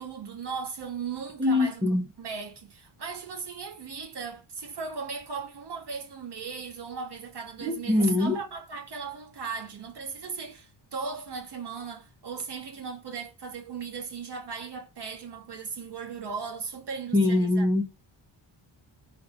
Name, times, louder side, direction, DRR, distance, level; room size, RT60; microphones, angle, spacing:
voice 1, 0.0-1.8 2.2-17.7, right 5 dB, 55° right, 2.8 m, -37 dB
voice 2, 1.4-2.0 7.6-8.4 17.1-17.8, left 2 dB, 10° right, 1.4 m, -23 dB
7.2 x 5.0 x 5.8 m
wide cardioid pair, 170°, 50 cm